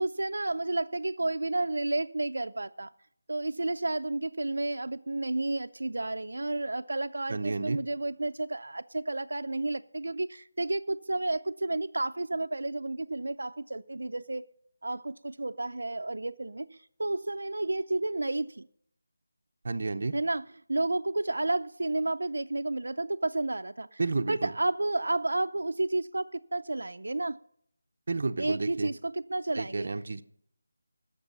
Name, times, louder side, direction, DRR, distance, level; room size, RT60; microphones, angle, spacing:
voice 1, 0.0-2.9 3.3-14.5 14.8-18.7 20.1-24.0 24.3-27.4 28.4-29.9, right 2 dB, 80° right, 0.5 m, -31 dB
voice 2, 7.3-7.8 19.6-20.1 24.0-24.5 28.1-28.9 29.5-30.2, right 3 dB, 40° right, 0.7 m, -31 dB
19.0 x 6.8 x 5.4 m
figure-of-eight pair, 175°, 0 cm